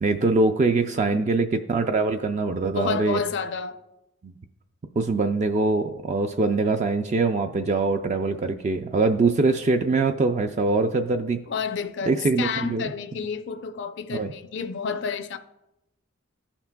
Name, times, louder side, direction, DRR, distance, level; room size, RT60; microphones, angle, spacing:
voice 1, 0.0-3.2 4.2-4.4 5.0-11.4 12.1-12.9 14.1-14.3, right 3 dB, 35° right, 0.3 m, -23 dB
voice 2, 2.7-3.8 11.5-15.4, left 5 dB, 60° left, 0.4 m, -30 dB
15.0 x 5.8 x 2.2 m
head